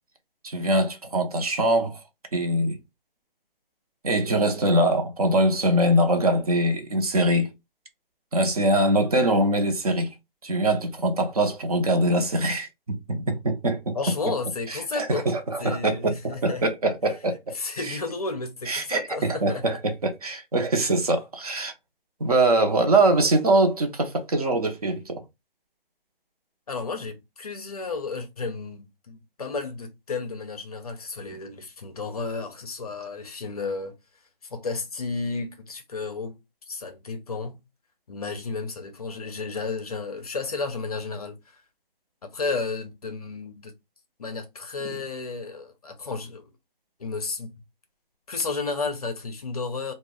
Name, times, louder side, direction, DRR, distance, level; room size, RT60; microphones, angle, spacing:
voice 1, 0.4-2.0 2.3-2.8 4.0-7.5 8.3-10.1 10.4-14.0 14.7-17.5 17.8-18.0 18.7-21.7 22.2-25.2 44.8-44.9, right 1 dB, 40° right, 0.5 m, -23 dB
voice 2, 13.9-15.3 15.6-16.6 17.5-19.8 26.7-33.9 34.5-36.4 36.7-37.6 38.1-41.4 42.2-43.7 44.2-46.5 47.0-47.5 48.3-49.9, left 4 dB, 40° left, 0.5 m, -32 dB
2.2 x 2.0 x 3.4 m
figure-of-eight pair, 160°, 29 cm